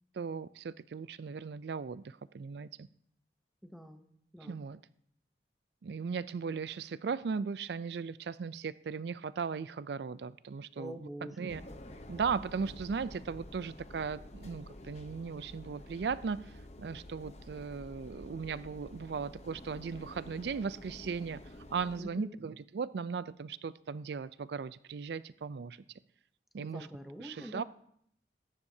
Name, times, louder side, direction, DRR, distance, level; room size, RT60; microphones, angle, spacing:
voice 1, 0.1-2.9 4.4-4.8 5.8-11.1 11.4-11.6 12.1-16.4 16.8-21.4 21.7-25.8 26.5-26.9 27.2-27.6, right 5 dB, 75° right, 16 dB, 0.4 m, -37 dB
voice 2, 3.6-4.1 4.3-4.6 10.8-11.7 22.0-22.4 26.6-27.6, equal, ahead, 5 dB, 0.7 m, -45 dB
sound 1, 11.5-22.0, left 1 dB, 40° left, 0.8 m, -50 dB
20.0 x 10.0 x 2.7 m, 0.69 s
head